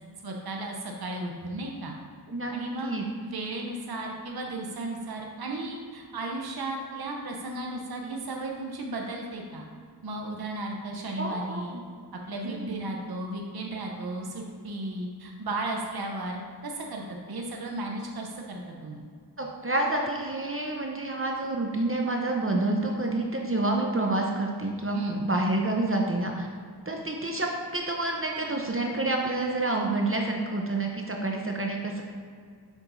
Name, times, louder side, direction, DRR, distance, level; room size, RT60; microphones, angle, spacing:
voice 1, 0.2-2.0 2.5-2.9 3.2-9.6 10.0-11.8 12.3-19.0 24.9-25.2, right 2 dB, 60° right, 0 dB, 0.8 m, -35 dB
voice 2, 11.2-11.8 12.4-12.7 19.4-26.5 26.9-32.0, right 2 dB, 30° right, 0 dB, 0.7 m, -28 dB
7.2 x 5.9 x 2.6 m, 2.1 s
wide cardioid pair, 50°, 41 cm